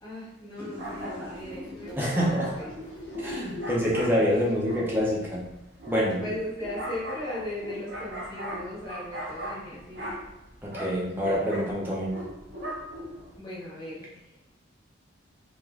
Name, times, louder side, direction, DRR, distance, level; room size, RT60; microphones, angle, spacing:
voice 1, 0.0-2.7 3.0-3.1 6.1-10.2 13.4-14.5, left 1 dB, 20° left, -8 dB, 0.9 m, -38 dB
sound 1, 0.6-4.6, left 1 dB, 70° left, 1.0 m, -41 dB
sound 2, 0.8-13.4, right 1 dB, 55° right, 0.6 m, -39 dB
voice 2, 2.0-2.5 3.2-5.4 5.9-6.2 10.6-12.1, equal, 10° right, -5 dB, 0.5 m, -26 dB
3.2 x 2.4 x 2.3 m, 0.90 s
head